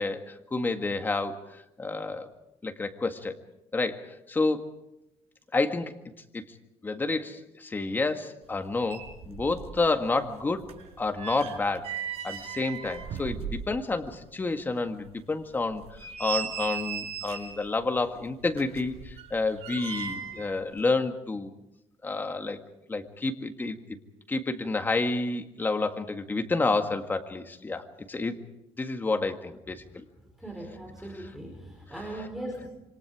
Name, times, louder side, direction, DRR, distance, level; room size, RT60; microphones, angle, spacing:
voice 1, 0.0-2.3 2.6-3.4 3.7-4.7 5.5-6.0 6.3-6.4 6.8-10.7 11.0-11.9 12.2-15.8 16.2-21.5 22.0-22.6 22.9-23.8 24.3-28.4 28.8-30.0, left 3 dB, 15° left, 6 dB, 1.8 m, -29 dB
sound 1, 8.5-8.6 8.8-9.8 10.1-14.0 14.4-14.5 15.0-15.1 15.7-17.6 18.5-20.5 20.8-20.9, right 7 dB, 65° right, 5.8 m, -37 dB
voice 2, 30.4-32.7, right 1 dB, 5° right, 1 dB, 4.5 m, -39 dB
27.5 x 25.0 x 4.9 m, 0.89 s
cardioid pair, 145°, 11 cm